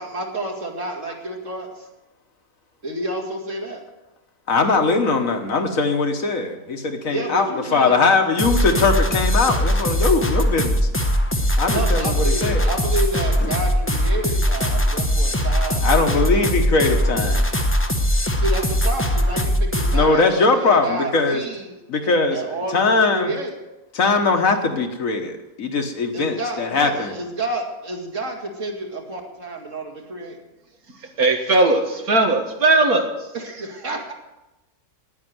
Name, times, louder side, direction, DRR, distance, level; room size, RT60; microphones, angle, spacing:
voice 1, 0.0-1.9 2.8-3.8 7.1-8.0 8.3-8.5 11.6-16.5 17.1-17.5 18.4-21.7 22.3-23.5 26.1-30.4 33.3-34.1, right 2 dB, 50° right, 1 dB, 2.5 m, -30 dB
voice 2, 4.5-10.9 11.6-12.7 13.4-13.5 15.8-17.5 19.9-21.4 21.9-22.5 22.7-23.3 23.9-27.1, left 3 dB, 60° left, 5 dB, 1.6 m, -20 dB
sound 1, 8.4-20.1, equal, 10° left, 0.8 m, -20 dB
voice 3, 31.2-33.1, right 2 dB, 65° right, 4 dB, 2.1 m, -18 dB
10.0 x 9.8 x 9.4 m, 1.0 s
omnidirectional pair, 1.7 m